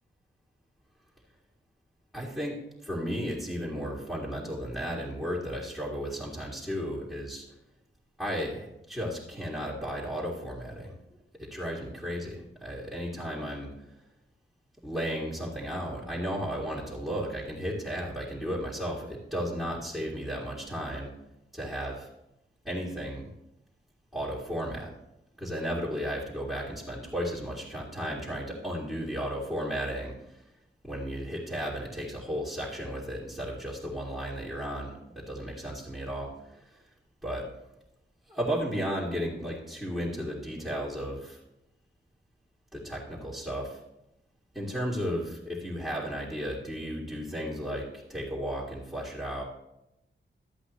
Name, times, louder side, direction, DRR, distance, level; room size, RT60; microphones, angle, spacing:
voice 1, 2.1-2.6 2.8-7.4 8.2-10.9 11.4-13.7 14.8-21.1 21.5-22.1 22.6-23.3 24.1-24.9 25.4-30.4 30.8-36.8 37.2-37.5 38.3-41.4 42.7-43.8 44.5-49.4, equal, ahead, -7 dB, 2.2 m, -34 dB
13.0 x 8.2 x 3.1 m, 0.87 s
wide cardioid pair, 100°, 21 cm